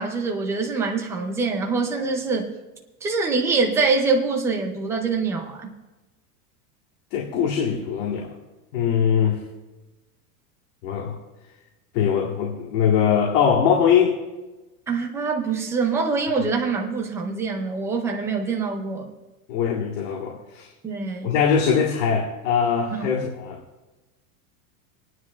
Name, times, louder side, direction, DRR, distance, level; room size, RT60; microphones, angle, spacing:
voice 1, 0.0-2.5 3.0-5.7 14.9-19.1 20.8-21.3 22.9-23.0, right 4 dB, 5° right, 2 dB, 0.4 m, -24 dB
voice 2, 7.1-8.4 8.7-9.4 10.8-11.2 11.9-14.2 19.5-20.7 21.2-23.6, left 7 dB, 55° left, 0 dB, 1.5 m, -22 dB
26.5 x 9.6 x 2.3 m, 1.1 s
supercardioid pair, 165°, 44 cm